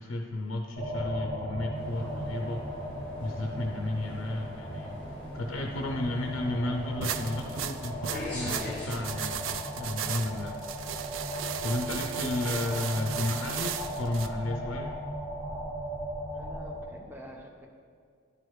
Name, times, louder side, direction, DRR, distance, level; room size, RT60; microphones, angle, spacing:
voice 1, 0.0-2.6 3.2-5.0 5.3-10.6 11.6-15.0, left 1 dB, 75° left, 2 dB, 0.5 m, -33 dB
sound 1, 0.8-16.8, equal, 45° right, 1.7 m, -37 dB
sound 2, 1.7-9.0, left 1 dB, 10° left, 1.7 m, -43 dB
sound 3, 7.0-14.3, right 9 dB, 75° right, 0.4 m, -36 dB
voice 2, 16.3-17.7, equal, 10° right, 1 dB, 0.6 m, -47 dB
11.0 x 4.8 x 3.1 m, 2.1 s
head